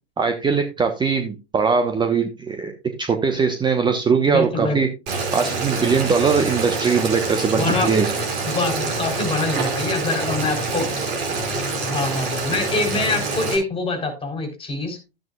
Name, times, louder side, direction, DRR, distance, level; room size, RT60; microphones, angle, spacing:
voice 1, 0.2-4.9 5.3-8.1, right 5 dB, 15° right, 6 dB, 1.1 m, -21 dB
voice 2, 4.3-4.8 7.5-8.0 8.5-10.9 11.8-15.0, left 2 dB, 15° left, 7 dB, 3.7 m, -25 dB
Boiling, 5.1-13.6, right 3 dB, 35° right, 5.4 m, -26 dB
13.0 x 9.2 x 2.4 m, 0.28 s
figure-of-eight pair, 100°, 32 cm